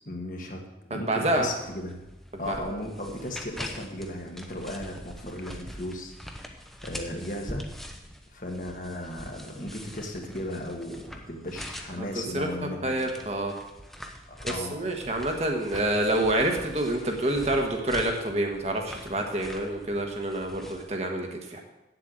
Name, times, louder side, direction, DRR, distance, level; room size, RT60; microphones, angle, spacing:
voice 1, 0.1-0.6 0.9-2.0 2.4-6.1 6.8-7.7 8.3-13.0 14.3-15.1, left 1 dB, 45° left, 1 dB, 1.6 m, -36 dB
voice 2, 0.9-1.5 2.4-2.5 12.0-12.5 12.8-13.5 14.4-21.6, right 1 dB, 35° right, 2 dB, 1.4 m, -27 dB
sound 1, 1.6-20.9, equal, ahead, 0.8 m, -43 dB
8.4 x 7.8 x 7.8 m, 0.99 s
head